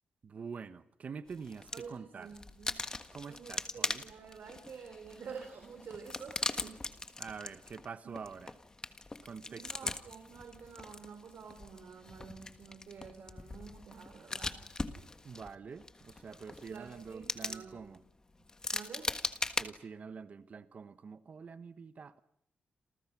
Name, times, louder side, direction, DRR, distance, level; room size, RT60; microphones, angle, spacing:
voice 1, 0.2-2.3 3.1-4.0 7.2-8.5 9.2-9.9 15.2-18.0 19.6-22.2, right 5 dB, 45° right, 12 dB, 1.1 m, -46 dB
sound 1, 1.3-1.9 2.3-19.6, left 3 dB, 20° left, 1.6 m, -41 dB
voice 2, 1.7-2.8 3.3-6.8 8.0-8.2 9.5-14.6 16.6-17.9 18.7-19.1, right 6 dB, 65° right, 6 dB, 3.8 m, -49 dB
29.0 x 28.0 x 6.1 m, 0.70 s
wide cardioid pair, 175°, 3 cm